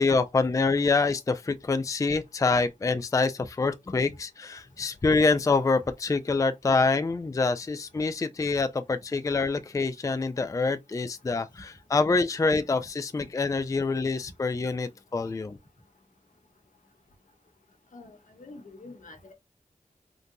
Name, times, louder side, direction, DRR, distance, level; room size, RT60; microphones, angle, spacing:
voice 1, 0.0-15.6, left 3 dB, 25° left, 0.3 m, -26 dB
voice 2, 17.9-19.3, left 2 dB, 80° left, 1.1 m, -47 dB
3.7 x 2.5 x 2.7 m
cardioid pair, 50°, 13 cm